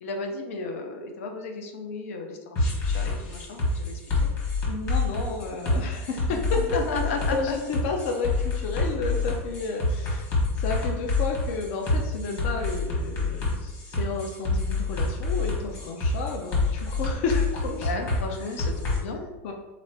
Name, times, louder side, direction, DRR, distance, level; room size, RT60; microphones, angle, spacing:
voice 1, 0.0-4.0 6.3-6.4 6.7-7.6 17.8-19.2, left 3 dB, 85° left, 3 dB, 0.8 m, -34 dB
sound 1, 2.6-19.0, left 3 dB, 35° left, 1.4 m, -27 dB
voice 2, 4.7-6.8 7.3-17.9 19.4-19.5, left 4 dB, 55° left, 2 dB, 0.6 m, -31 dB
3.9 x 3.1 x 4.3 m, 1.1 s
supercardioid pair, 170°, 7 cm